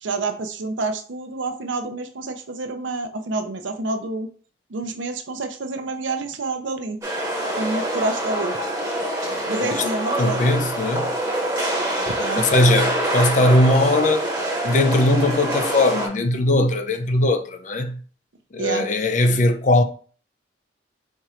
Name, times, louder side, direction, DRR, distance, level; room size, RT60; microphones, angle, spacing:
voice 1, 0.0-4.3 4.7-7.0 7.5-8.5 9.5-10.4 12.1-12.4 18.6-18.9, right 3 dB, 90° right, 0.6 m, -28 dB
sound 1, 7.0-16.1, right 1 dB, 15° right, 1.1 m, -25 dB
voice 2, 9.2-9.8 10.2-11.1 12.4-14.3 14.6-18.0 18.5-19.8, left 1 dB, 40° left, 0.5 m, -19 dB
4.5 x 2.4 x 4.3 m
head